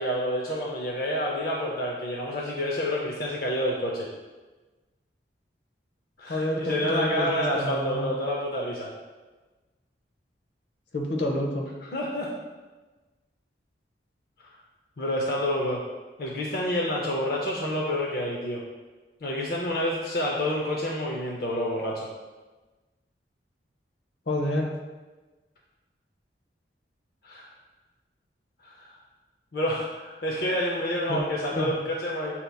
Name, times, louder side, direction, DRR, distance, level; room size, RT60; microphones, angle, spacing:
voice 1, 0.0-4.1 6.2-8.9 11.8-12.3 14.4-14.5 15.0-15.8 16.2-18.6 19.2-22.1 27.2-27.5 28.6-28.9 29.5-32.3, equal, 55° left, -2 dB, 0.5 m, -28 dB
voice 2, 6.3-8.1 10.9-11.7 24.3-24.7 31.1-31.2 31.5-31.7, left 1 dB, 80° left, 0 dB, 0.8 m, -28 dB
7.9 x 2.8 x 2.3 m, 1.2 s
head